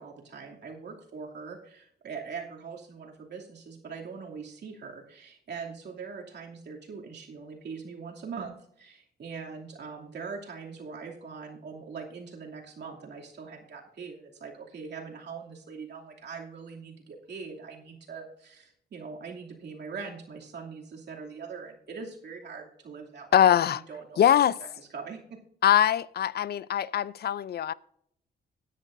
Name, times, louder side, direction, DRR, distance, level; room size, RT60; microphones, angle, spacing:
voice 1, 0.0-24.3 24.8-25.4, right 5 dB, 65° right, 2.7 m, -42 dB
voice 2, 23.3-23.8 24.2-24.6 25.6-27.7, left 10 dB, 60° left, 0.4 m, -22 dB
17.0 x 10.0 x 2.6 m
cardioid pair, 95°, 19 cm